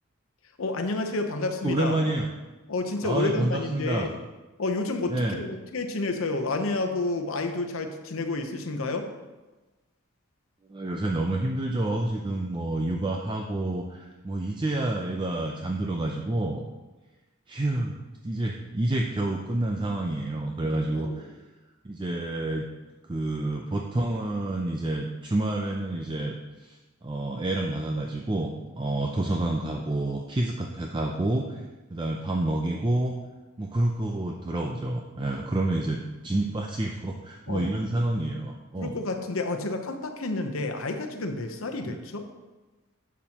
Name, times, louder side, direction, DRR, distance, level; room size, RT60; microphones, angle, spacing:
voice 1, 0.6-2.0 2.7-4.1 4.6-9.1 20.9-21.2 37.5-37.6 38.8-42.3, left 2 dB, 80° left, 5 dB, 0.8 m, -30 dB
voice 2, 1.6-2.3 3.0-4.1 5.1-5.4 10.7-16.6 17.5-21.4 21.8-22.7 23.1-31.6 31.9-33.2 33.6-39.0 41.8-42.0, right 1 dB, 25° right, 1 dB, 0.5 m, -28 dB
10.5 x 7.2 x 2.9 m, 1.2 s
head